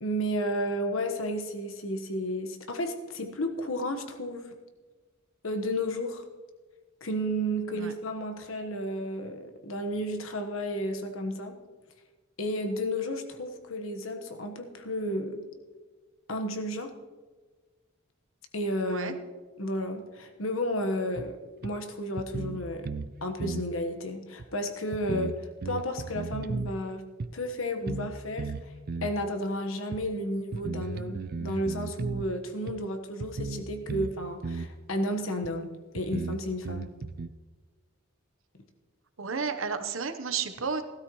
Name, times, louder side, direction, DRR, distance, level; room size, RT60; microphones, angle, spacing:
voice 1, 0.0-4.5 5.4-6.2 7.0-11.6 12.4-15.5 16.3-16.9 18.5-19.2 19.6-21.3 21.6-22.9 23.2-25.3 25.6-27.0 27.3-28.5 29.0-36.9, equal, 75° left, 6 dB, 1.3 m, -32 dB
sound 1, 21.2-21.3 21.6-21.7 22.2-23.1 23.4-23.7 24.4-24.5 24.9-26.7 27.2-27.3 27.9-28.1 28.4-29.2 29.9-30.0 30.5-32.3 32.7-32.8 33.2-34.1 34.4-34.7 35.4-35.5 36.0-37.3, right 4 dB, 45° right, 0.4 m, -35 dB
voice 2, 39.2-40.8, right 5 dB, 70° right, 8 dB, 1.0 m, -32 dB
16.0 x 13.0 x 3.1 m, 1.3 s
head